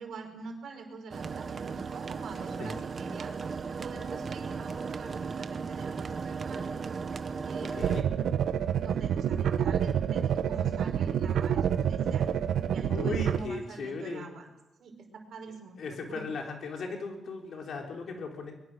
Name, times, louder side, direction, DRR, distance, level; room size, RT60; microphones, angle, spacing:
voice 1, 0.0-6.8 7.4-8.1 8.8-12.3 12.7-14.5 14.8-16.2, right 4 dB, 60° right, 4 dB, 5.1 m, -45 dB
sound 1, 1.1-8.0, right 5 dB, 35° right, 1.1 m, -36 dB
voice 2, 7.7-8.0 12.9-14.3 15.8-18.5, left 4 dB, 55° left, 1 dB, 4.2 m, -37 dB
sound 2, 7.8-13.4, right 8 dB, 75° right, 1.4 m, -27 dB
23.0 x 22.0 x 6.4 m, 0.96 s
wide cardioid pair, 175°, 0 cm